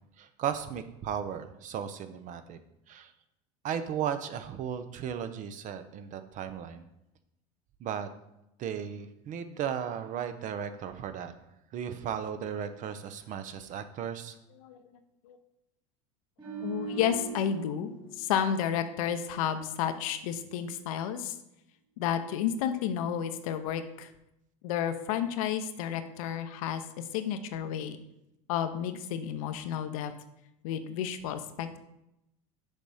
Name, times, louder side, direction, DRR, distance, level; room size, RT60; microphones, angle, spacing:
voice 1, 0.2-2.6 2.9-3.1 3.6-6.8 7.8-8.1 8.6-11.3 11.7-14.4, right 8 dB, 45° right, 10 dB, 0.7 m, -35 dB
sound 1, 16.4-19.7 20.0-20.2, right 4 dB, 25° right, 2.4 m, -41 dB
voice 2, 16.6-17.9 18.2-21.4 22.0-24.1 24.6-28.0 28.5-30.1 30.6-31.7, left 9 dB, 80° left, 9 dB, 0.7 m, -31 dB
6.5 x 4.1 x 4.9 m, 0.85 s
supercardioid pair, 100°, 18 cm